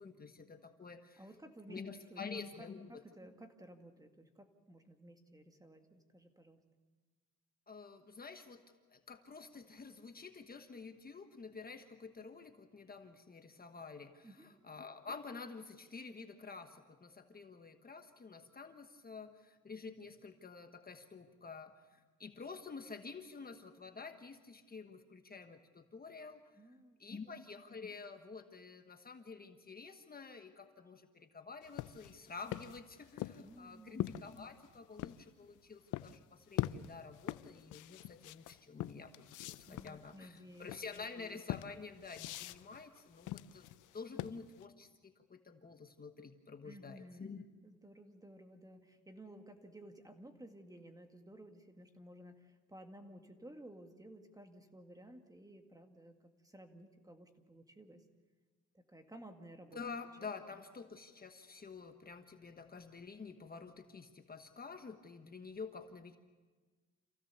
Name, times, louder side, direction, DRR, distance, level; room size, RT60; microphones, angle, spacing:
voice 1, 0.0-1.3 1.7-2.9 3.2-3.3 7.7-8.6 8.9-26.4 26.7-43.7 43.9-47.4 59.7-66.2, left 4 dB, 30° left, 6 dB, 1.3 m, -49 dB
voice 2, 1.2-1.8 2.1-2.2 2.6-6.6 14.2-14.5 26.6-27.2 33.4-34.0 39.7-40.8 46.6-47.3 47.6-58.0 58.7-59.8 60.2-60.3, right 1 dB, 10° right, 6 dB, 2.0 m, -55 dB
sound 1, 31.6-35.2 35.9-36.2 36.5-44.6, left 15 dB, 85° left, 0.6 m, -43 dB
27.0 x 16.0 x 7.0 m, 1.4 s
cardioid pair, 90°, 30 cm